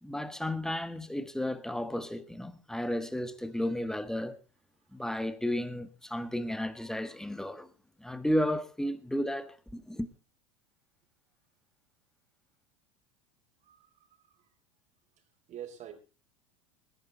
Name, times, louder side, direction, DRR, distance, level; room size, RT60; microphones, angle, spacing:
voice 1, 0.0-4.4 4.9-7.7 8.0-10.1, left 1 dB, 5° left, 1.4 m, -33 dB
voice 2, 13.6-14.5 15.5-15.9, right 10 dB, 45° right, 4.1 m, -46 dB
20.5 x 10.0 x 3.9 m
hypercardioid pair, 90°, 16 cm